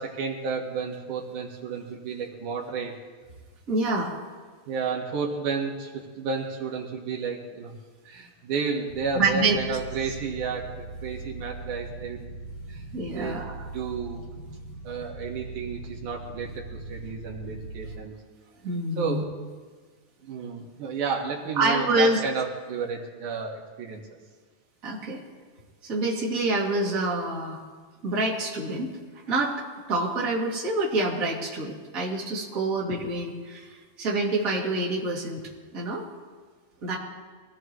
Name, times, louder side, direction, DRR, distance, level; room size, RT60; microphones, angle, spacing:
voice 1, 0.0-2.9 4.7-7.7 8.0-12.3 12.7-12.8 13.1-13.4 13.7-14.2 14.8-18.1 19.0-19.3 20.2-24.0, right 5 dB, 75° right, -1 dB, 3.0 m, -32 dB
voice 2, 3.7-4.1 9.1-9.6 12.9-13.6 18.6-19.2 21.5-22.2 24.8-25.2 25.9-27.6 28.0-28.9 29.3-29.6 29.9-35.4 35.7-36.0 36.8-37.0, right 2 dB, 30° right, -4 dB, 2.6 m, -26 dB
sound 1, 8.9-18.0, right 2 dB, 70° left, 0.4 m, -40 dB
23.5 x 16.5 x 3.1 m, 1.5 s
omnidirectional pair, 3.6 m